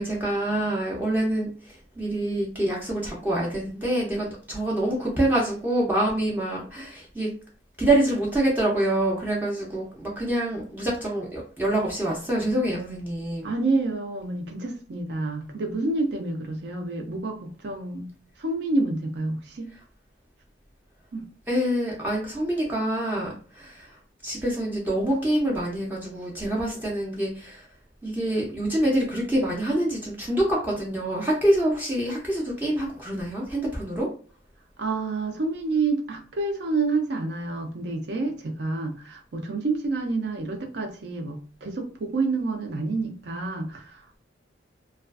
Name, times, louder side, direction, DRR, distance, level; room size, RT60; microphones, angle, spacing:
voice 1, 0.0-7.3 7.8-13.5 21.5-24.0 24.2-27.7 28.0-34.1, right 1 dB, 10° right, -4 dB, 0.5 m, -26 dB
voice 2, 13.4-18.1 18.4-19.7 21.1-21.3 34.8-44.2, right 3 dB, 60° right, 4 dB, 0.5 m, -28 dB
2.4 x 2.3 x 2.3 m, 0.40 s
head